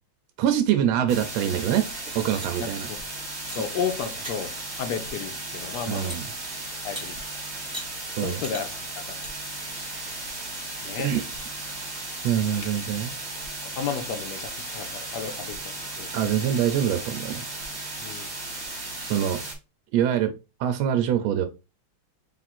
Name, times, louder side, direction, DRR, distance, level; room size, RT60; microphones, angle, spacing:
voice 1, 0.4-2.9 5.9-6.3 8.2-8.4 11.0-11.2 12.2-13.1 16.1-17.4 19.0-19.4 19.9-20.3 20.6-21.5, right 10 dB, 80° right, 8 dB, 1.3 m, -24 dB
sound 1, 1.1-19.5, right 2 dB, 25° right, 1.0 m, -35 dB
sound 2, 2.3-2.5 3.5-3.6 4.0-4.4 6.1-6.2 6.9-7.1 7.7-7.9 8.4-8.6 9.2-9.3 9.8-9.9 10.5-10.6 11.1-11.5 13.1-13.2 13.7-14.0, equal, 5° right, 0.8 m, -40 dB
voice 2, 3.5-4.5 4.8-6.3 6.8-7.2 8.2-8.7 9.1-9.2 10.8-11.1 13.8-16.1 18.0-18.3, left 6 dB, 70° left, 7 dB, 1.0 m, -32 dB
3.7 x 2.5 x 4.1 m, 0.28 s
omnidirectional pair, 2.2 m